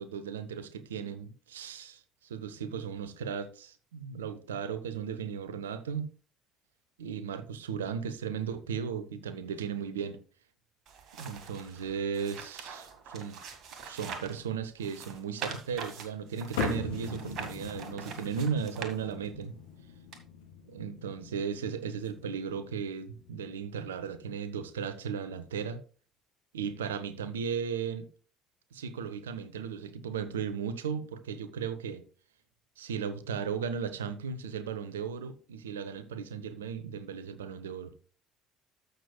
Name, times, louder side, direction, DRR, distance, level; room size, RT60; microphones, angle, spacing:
voice 1, 0.0-6.1 7.0-10.2 11.1-13.4 13.8-19.5 20.7-25.8 26.5-28.1 28.7-32.1 32.8-37.9, right 7 dB, 75° right, 0.7 m, -36 dB
sound 1, 10.9-14.4 14.8-19.4 20.1-20.2, right 6 dB, 50° right, 1.6 m, -43 dB
sound 2, 16.6-23.3, left 6 dB, 70° left, 1.6 m, -41 dB
13.5 x 6.6 x 2.2 m
figure-of-eight pair, 55°, 0 cm